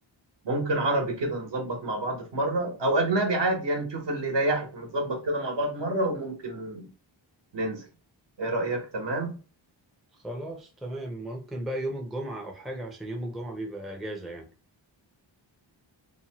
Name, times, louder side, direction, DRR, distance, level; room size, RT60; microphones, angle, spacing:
voice 1, 0.4-6.9 7.5-7.8 8.4-9.3, right 2 dB, 65° right, 1.1 m, -28 dB
voice 2, 10.1-14.5, right 1 dB, ahead, 0.5 m, -35 dB
2.8 x 2.2 x 2.9 m
wide cardioid pair, 130°, 46 cm